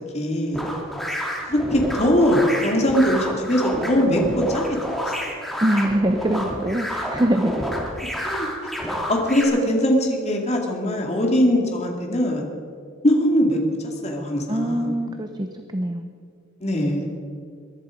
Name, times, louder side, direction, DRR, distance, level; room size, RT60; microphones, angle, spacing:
voice 1, 0.1-0.6 1.4-4.8 5.2-5.6 8.2-8.7 9.1-12.5 13.0-13.6 14.0-15.0 16.6-17.1, equal, 35° left, 1 dB, 2.4 m, -21 dB
sound 1, 0.5-9.4, equal, ahead, 2.6 m, -29 dB
voice 2, 5.6-7.7 14.5-16.1, right 1 dB, 20° right, 6 dB, 0.7 m, -23 dB
21.5 x 11.0 x 5.2 m, 2.3 s
head